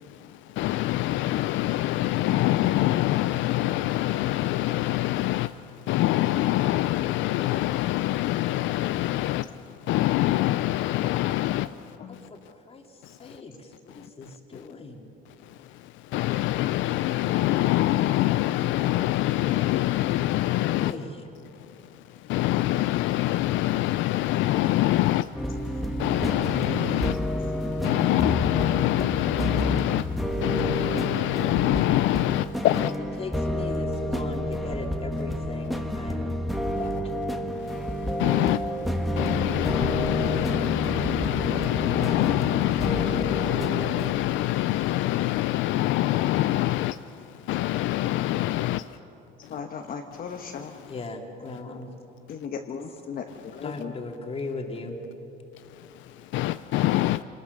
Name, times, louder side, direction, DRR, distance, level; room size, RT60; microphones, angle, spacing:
voice 1, 0.0-12.0 13.0-13.4 13.9-14.1 15.4-20.9 21.9-32.9 37.6-49.0 49.5-49.6 50.3-50.9 53.3-53.4 55.8-57.2, left 15 dB, 75° left, 13 dB, 0.5 m, -25 dB
voice 2, 12.1-15.1 20.7-21.2 32.7-32.9 33.2-36.3 36.8-37.1 50.9-51.9 53.6-55.0, left 3 dB, 30° left, 2 dB, 2.4 m, -38 dB
sound 1, 25.3-44.1, equal, ahead, 1.3 m, -30 dB
voice 3, 49.5-50.7 52.3-53.9, left 6 dB, 50° left, 3 dB, 1.2 m, -36 dB
26.0 x 19.5 x 6.6 m, 2.8 s
cardioid pair, 135°, 20 cm